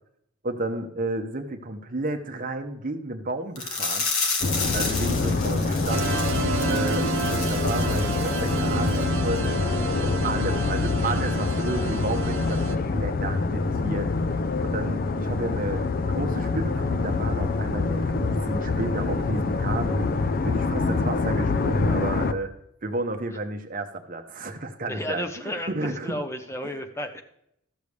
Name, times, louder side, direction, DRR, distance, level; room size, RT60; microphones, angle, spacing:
voice 1, 0.4-4.1 4.7-6.1 6.7-22.5 22.8-26.2, right 2 dB, 40° right, 5 dB, 0.8 m, -32 dB
sound 1, 3.6-8.6 8.9-9.0 9.4-9.5, left 4 dB, 75° left, 1.5 m, -31 dB
sound 2, 4.4-22.3, left 3 dB, 40° left, 0.4 m, -26 dB
sound 3, 5.9-12.7, right 4 dB, 70° right, 0.9 m, -31 dB
voice 2, 24.9-27.2, left 1 dB, 10° left, 5 dB, 0.7 m, -33 dB
13.5 x 6.7 x 3.3 m, 0.76 s
head